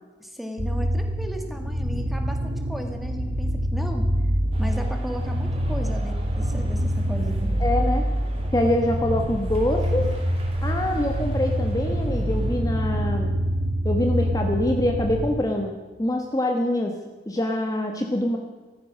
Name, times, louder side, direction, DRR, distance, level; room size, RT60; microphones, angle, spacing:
voice 1, 0.2-4.1 4.6-7.5, equal, ahead, 4 dB, 1.8 m, -35 dB
sound 1, 0.6-15.3, equal, 70° right, 1.3 m, -25 dB
sound 2, 4.5-12.6, right 1 dB, 35° right, 3.0 m, -46 dB
voice 2, 7.6-8.0 8.5-10.1 10.6-13.3 13.8-15.7 16.0-16.9 17.3-18.4, left 1 dB, 20° left, 2 dB, 1.2 m, -24 dB
14.5 x 14.5 x 6.2 m, 1.3 s
head